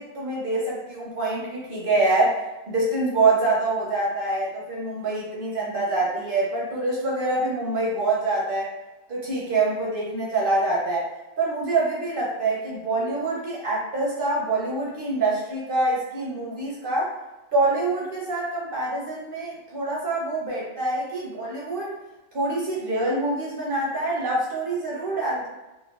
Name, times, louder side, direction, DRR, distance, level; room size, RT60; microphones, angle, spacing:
voice 1, 0.0-2.4 2.7-8.7 9.1-11.1 11.4-17.1 17.5-21.9 22.3-25.5, right 2 dB, 55° right, -5 dB, 0.6 m, -25 dB
3.0 x 2.2 x 2.3 m, 1.1 s
omnidirectional pair, 1.4 m